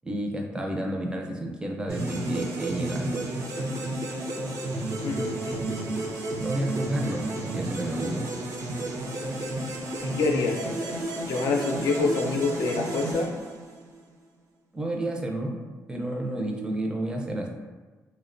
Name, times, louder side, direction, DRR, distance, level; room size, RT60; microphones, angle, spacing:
voice 1, 0.0-3.2 6.4-8.3 14.7-15.6 15.9-17.5, right 1 dB, 15° right, 1 dB, 0.4 m, -30 dB
sound 1, 1.9-14.0, right 2 dB, 65° right, 0.5 m, -32 dB
voice 2, 5.0-6.0 10.0-10.6 11.2-13.3, left 3 dB, 85° left, 2 dB, 0.4 m, -27 dB
2.7 x 2.1 x 2.5 m, 1.3 s
cardioid pair, 80°, 6 cm